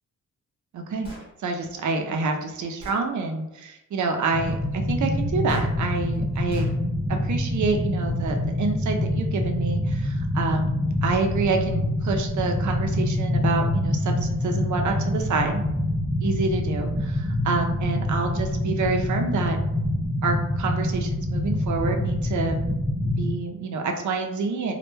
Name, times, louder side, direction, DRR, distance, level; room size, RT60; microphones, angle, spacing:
voice 1, 0.7-1.1 1.4-6.7 7.2-10.8 11.0-15.6 16.2-19.6 20.2-22.6 23.0-24.7, right 4 dB, 70° right, 3 dB, 0.5 m, -27 dB
Gunshot gunfire, 1.0-1.3 2.2-2.3 2.8-3.1 5.5-5.7 6.5-6.8, right 1 dB, 20° right, 0.8 m, -41 dB
sound 1, 4.3-23.3, left 1 dB, 5° left, 0.5 m, -26 dB
2.1 x 2.1 x 3.0 m, 0.92 s
wide cardioid pair, 120°, 31 cm